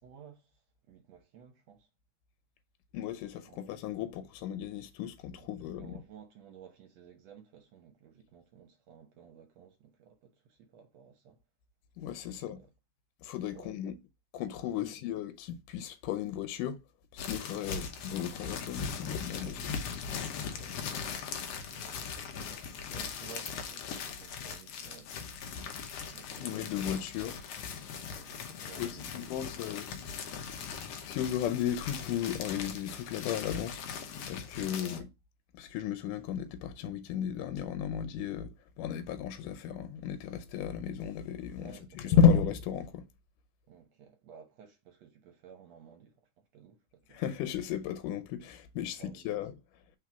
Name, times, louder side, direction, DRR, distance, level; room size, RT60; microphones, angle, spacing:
voice 1, 0.0-1.9 3.5-3.6 4.0-4.1 5.4-5.5 5.7-11.4 12.3-12.7 13.5-13.9 14.7-15.0 17.5-17.8 19.3-20.2 20.5-25.3 26.1-27.0 28.1-29.6 34.7-35.1 41.6-42.2 43.7-47.2 48.9-49.4, right 7 dB, 65° right, 1.8 m, -55 dB
voice 2, 2.9-6.0 12.0-12.6 13.2-14.0 14.3-16.8 17.1-20.2 24.1-24.2 26.4-27.3 28.8-29.9 30.6-30.8 31.0-33.8 34.3-35.1 35.5-43.1 47.1-49.5, left 8 dB, 85° left, 2.3 m, -33 dB
sound 1, 17.2-35.0, left 6 dB, 65° left, 1.7 m, -40 dB
4.8 x 4.1 x 5.8 m
omnidirectional pair, 3.6 m